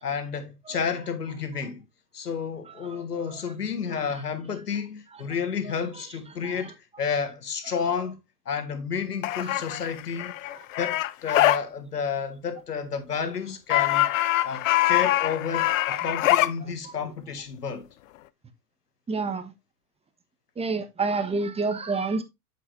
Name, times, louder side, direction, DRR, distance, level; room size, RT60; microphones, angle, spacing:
voice 1, 0.0-1.9 2.1-8.2 8.4-10.3 10.8-14.1 14.4-17.9, left 6 dB, 85° left, 1.7 m, -31 dB
voice 2, 2.7-3.0 3.3-3.4 3.9-4.1 5.1-5.2 5.7-6.0 6.4-6.7 9.4-9.7 14.3-14.4 15.9-16.1 16.6-16.9 19.1-19.5 20.5-22.2, right 4 dB, 15° right, 1.3 m, -31 dB
sound 1, 9.2-11.6 13.7-16.5, left 15 dB, 60° left, 0.7 m, -23 dB
8.0 x 7.8 x 2.6 m
hypercardioid pair, 100°, 46 cm